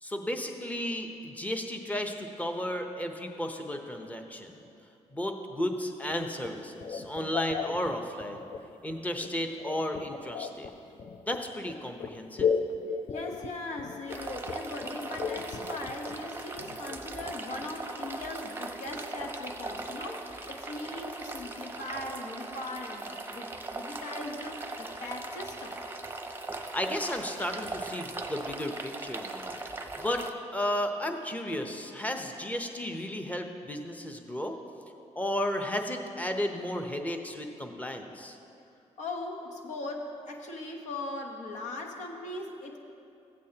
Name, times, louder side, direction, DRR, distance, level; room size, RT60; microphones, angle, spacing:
voice 1, 0.0-4.6 5.1-8.5 8.8-10.7 11.2-12.5 26.7-29.6 30.0-30.2 30.5-34.6 35.1-38.4, left 1 dB, 10° left, 5 dB, 0.8 m, -33 dB
sound 1, 6.1-17.8, left 6 dB, 45° left, 0.5 m, -36 dB
voice 2, 13.1-25.8 39.0-42.8, left 2 dB, 75° left, 2 dB, 1.1 m, -39 dB
sound 2, 14.1-30.3, right 2 dB, 15° right, 0.7 m, -39 dB
15.0 x 8.4 x 2.9 m, 2.7 s
cardioid pair, 80°, 12 cm